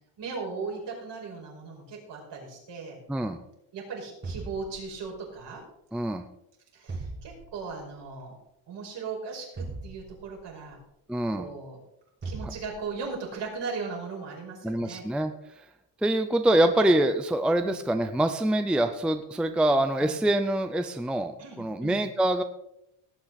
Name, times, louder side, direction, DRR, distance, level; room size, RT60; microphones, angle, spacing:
voice 1, 0.2-3.0 3.7-5.6 6.7-8.4 8.7-10.8 11.3-11.8 12.2-15.0 16.5-16.7 17.6-17.8 20.0-20.2 21.4-22.0, right 4 dB, 60° right, -1 dB, 5.5 m, -38 dB
voice 2, 3.1-3.4 5.9-6.2 11.1-11.5 12.4-12.5 14.6-15.3 16.0-22.4, right 1 dB, ahead, 8 dB, 0.5 m, -25 dB
sound 1, 4.2-5.4 6.9-7.8 9.6-10.7 12.2-13.2, right 3 dB, 20° right, 1.9 m, -39 dB
18.0 x 8.7 x 4.1 m, 0.79 s
cardioid pair, 145°, 47 cm